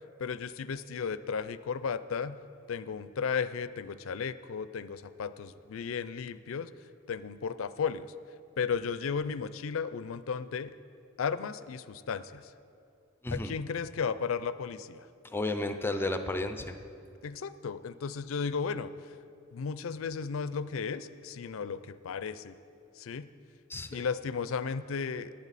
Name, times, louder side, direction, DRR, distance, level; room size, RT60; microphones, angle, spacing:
voice 1, 0.2-2.4 2.7-6.7 7.1-8.1 8.6-10.7 11.2-12.4 13.3-15.1 17.2-18.9 19.5-22.6 23.0-23.3 23.9-25.3, left 6 dB, 75° left, 14 dB, 0.4 m, -34 dB
voice 2, 13.2-13.6 15.3-16.7 23.7-24.0, left 2 dB, 10° left, 7 dB, 0.5 m, -32 dB
18.0 x 8.7 x 4.1 m, 2.6 s
head